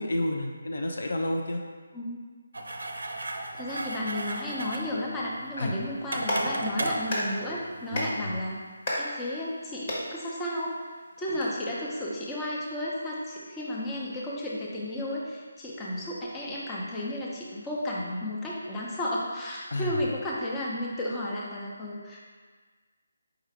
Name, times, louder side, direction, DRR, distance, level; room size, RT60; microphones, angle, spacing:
voice 1, 0.0-1.7 5.6-5.7 7.9-8.4 19.7-20.0, left 1 dB, 60° left, 2 dB, 0.5 m, -30 dB
sound 1, 2.5-8.1, right 2 dB, 70° right, 0.5 m, -35 dB
voice 2, 3.5-8.7 9.0-10.8 11.2-22.2, left 1 dB, 15° left, -5 dB, 0.6 m, -33 dB
Clapping, 6.0-11.4, equal, 40° left, 1.1 m, -35 dB
4.8 x 2.4 x 4.5 m, 1.5 s
figure-of-eight pair, 150°, 0 cm